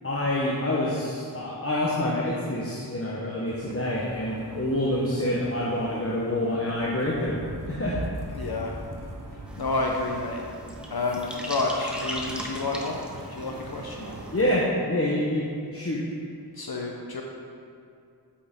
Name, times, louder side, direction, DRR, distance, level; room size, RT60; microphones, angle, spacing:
voice 1, 0.0-7.4 7.7-8.0 14.3-16.0, left 1 dB, 35° left, -5 dB, 1.0 m, -27 dB
sound 1, 3.5-14.6, right 2 dB, 50° right, 0.9 m, -41 dB
voice 2, 8.3-8.7 9.6-10.4 10.9-13.0 13.3-14.1 16.5-17.2, left 3 dB, 65° left, 0 dB, 0.8 m, -29 dB
sound 2, 9.5-14.6, equal, ahead, 1.0 m, -39 dB
8.6 x 7.8 x 3.6 m, 2.5 s
wide cardioid pair, 50°, 40 cm